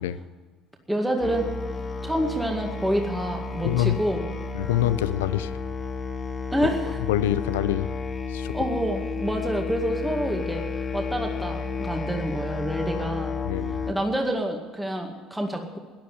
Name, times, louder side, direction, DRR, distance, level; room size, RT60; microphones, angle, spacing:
voice 1, 0.9-1.5 2.0-4.2 6.5-7.0 8.5-10.7 10.9-13.3 13.9-15.8, right 1 dB, 5° right, 2 dB, 2.1 m, -27 dB
Musical instrument, 1.2-13.9, left 4 dB, 30° left, 2.0 m, -32 dB
voice 2, 3.6-4.0 4.5-5.6 7.1-7.9 8.3-8.5 13.4-13.8, left 13 dB, 80° left, 15 dB, 0.5 m, -25 dB
13.0 x 10.0 x 9.3 m, 1.5 s
hypercardioid pair, 65°, 0 cm